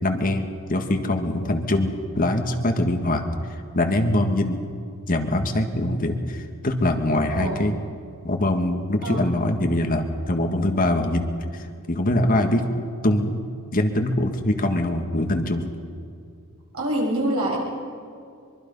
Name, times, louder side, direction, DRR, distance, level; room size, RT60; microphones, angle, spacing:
voice 1, 0.0-4.6 5.1-7.7 8.2-11.2 11.5-12.7 13.0-13.4 13.7-15.7, left 1 dB, 40° left, 5 dB, 1.8 m, -23 dB
voice 2, 16.7-17.6, right 1 dB, 75° right, -2 dB, 6.9 m, -25 dB
24.0 x 23.5 x 5.5 m, 2.3 s
head